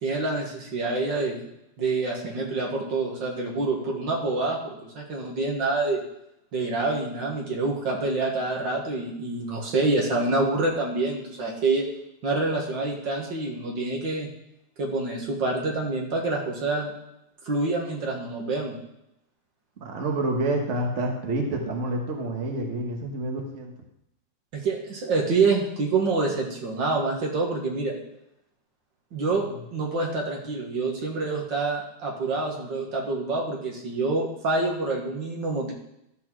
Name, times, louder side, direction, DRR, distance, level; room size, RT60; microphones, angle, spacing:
voice 1, 0.0-1.4 1.8-6.0 6.5-11.9 12.2-14.3 14.8-16.9 17.5-18.8 24.5-27.9 29.1-29.4 29.7-35.7, right 3 dB, 75° right, -1 dB, 2.4 m, -27 dB
voice 2, 19.8-23.7 29.3-29.6, right 2 dB, 40° right, 1 dB, 1.5 m, -28 dB
13.0 x 4.4 x 6.1 m, 0.82 s
omnidirectional pair, 2.0 m